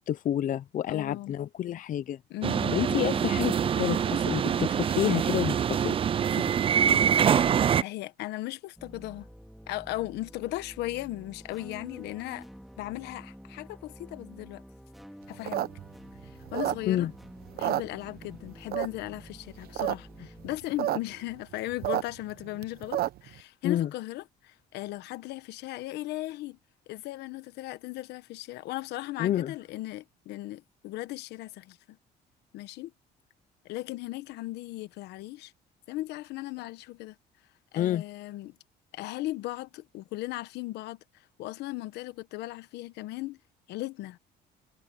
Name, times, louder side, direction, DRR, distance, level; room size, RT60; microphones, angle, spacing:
voice 1, 0.0-2.2 2.7-6.0 6.3-6.4 16.9-17.1 23.6-23.9 29.2-29.5 37.7-38.0, left 11 dB, 50° left, 0.7 m, -29 dB
voice 2, 0.9-1.4 2.3-2.8 6.8-7.3 7.8-9.3 9.7-12.5 12.8-14.6 15.3-15.7 16.2-17.1 17.5-26.6 26.9-32.0 32.5-32.9 33.6-35.5 35.9-37.2 37.7-38.5 38.9-41.0 41.4-43.4 43.7-44.2, left 17 dB, 85° left, 1.1 m, -37 dB
sound 1, 2.4-7.8, right 8 dB, 30° right, 0.4 m, -25 dB
sound 2, 8.8-20.6, equal, ahead, 3.0 m, -49 dB
sound 3, 15.3-17.1 17.5-18.4 18.7-19.2 19.6-19.9 20.2-20.3 20.5-21.0 21.3-23.3, right 13 dB, 65° right, 0.9 m, -30 dB
cardioid pair, 110°, 17 cm